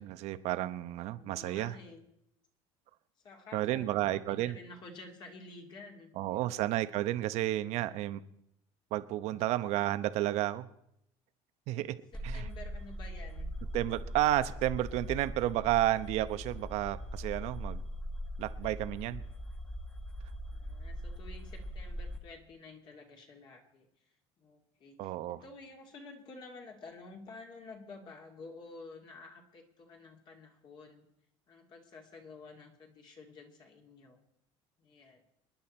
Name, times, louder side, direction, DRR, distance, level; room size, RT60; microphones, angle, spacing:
voice 1, 0.0-1.7 3.5-4.6 6.2-8.2 8.9-10.7 11.7-11.9 12.2-12.5 13.7-17.8 18.4-19.2 25.0-25.4, right 14 dB, 65° right, 12 dB, 0.9 m, -31 dB
voice 2, 1.1-2.0 3.2-6.7 12.1-13.5 20.5-23.9 24.4-31.1 31.5-34.2 34.8-35.2, left 3 dB, 40° left, 1 dB, 2.5 m, -51 dB
sound 1, 12.1-22.2, equal, 10° left, 1.3 m, -41 dB
26.5 x 10.5 x 4.3 m, 0.77 s
cardioid pair, 155°, 12 cm